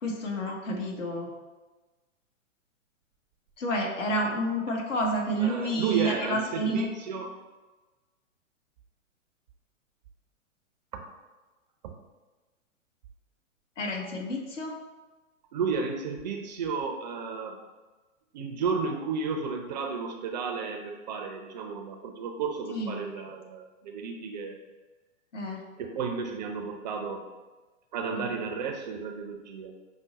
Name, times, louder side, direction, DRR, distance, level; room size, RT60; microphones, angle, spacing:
voice 1, 0.0-1.3 3.6-6.9 13.8-14.7 22.7-23.0 25.3-25.6 28.1-28.3, right 1 dB, 65° left, 0 dB, 1.2 m, -29 dB
voice 2, 5.4-7.3 10.9-11.0 11.8-11.9 15.5-17.6 18.3-24.6 25.8-27.2 27.9-29.7, right 5 dB, 35° right, 3 dB, 0.4 m, -33 dB
5.7 x 2.1 x 3.9 m, 1.2 s
hypercardioid pair, 120°, 39 cm